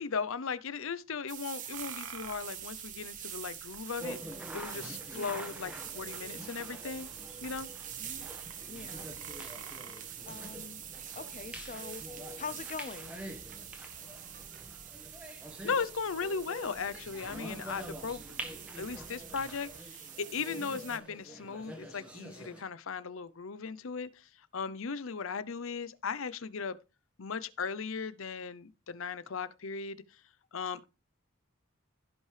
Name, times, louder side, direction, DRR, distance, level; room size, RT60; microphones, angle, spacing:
voice 1, 0.0-7.1 7.4-7.7 15.6-18.4 18.7-26.8 27.2-30.0 30.5-30.9, left 5 dB, 70° left, 0.7 m, -37 dB
sound 1, 1.3-21.0, right 10 dB, 35° right, 1.3 m, -45 dB
sound 2, 1.7-19.8, right 4 dB, 85° right, 1.5 m, -55 dB
sound 3, 4.0-22.6, equal, 5° right, 1.5 m, -47 dB
voice 2, 5.1-5.5 8.0-8.3 8.7-9.1 10.3-10.8 11.1-12.0 12.4-13.2, left 5 dB, 35° left, 0.5 m, -43 dB
16.0 x 5.5 x 3.3 m
head